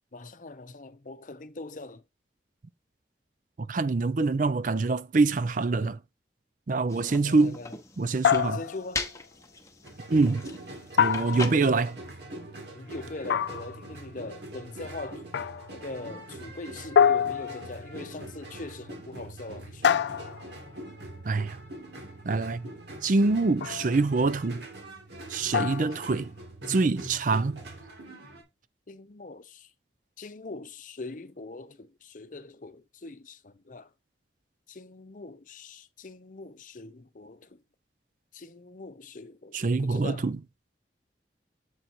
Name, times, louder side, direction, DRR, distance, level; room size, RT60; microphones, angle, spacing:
voice 1, 0.1-2.0 7.1-7.7 8.4-9.0 11.3-11.8 12.7-15.3 15.7-20.1 28.9-29.7 30.2-33.9 34.7-37.6 38.3-40.3, left 3 dB, 45° left, 0.7 m, -42 dB
voice 2, 3.6-6.0 6.7-7.6 8.0-8.6 10.1-10.5 11.0-11.9 21.2-21.6 22.2-22.7 23.0-24.7 25.3-26.3 26.7-27.6 39.5-40.4, right 3 dB, 45° right, 0.5 m, -25 dB
sound 1, 6.9-11.9, left 4 dB, 15° left, 1.0 m, -40 dB
sound 2, 8.2-9.0 11.0-11.8 13.3-13.9 15.3-15.7 17.0-17.9 19.8-20.6 23.6-24.0 25.5-26.0, left 8 dB, 75° left, 0.3 m, -26 dB
sound 3, 9.8-28.4, right 1 dB, 75° right, 2.4 m, -43 dB
7.9 x 4.0 x 4.5 m
head